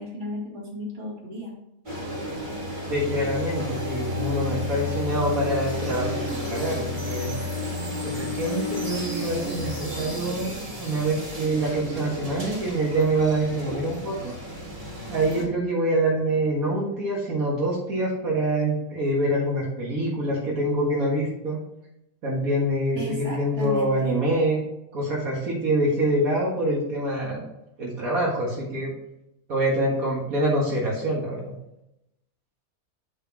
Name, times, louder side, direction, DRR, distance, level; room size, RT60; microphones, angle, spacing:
voice 1, 0.0-1.5 23.0-24.1, left 1 dB, 50° right, -4 dB, 2.6 m, -34 dB
sound 1, 1.9-15.5, left 1 dB, 35° right, 2.1 m, -32 dB
voice 2, 2.9-7.4 8.0-10.5 10.8-14.4 15.1-21.6 22.2-24.6 24.9-27.4 27.8-28.9 29.5-31.5, right 1 dB, 80° right, -4 dB, 2.1 m, -25 dB
12.0 x 4.1 x 3.0 m, 0.86 s
omnidirectional pair, 1.5 m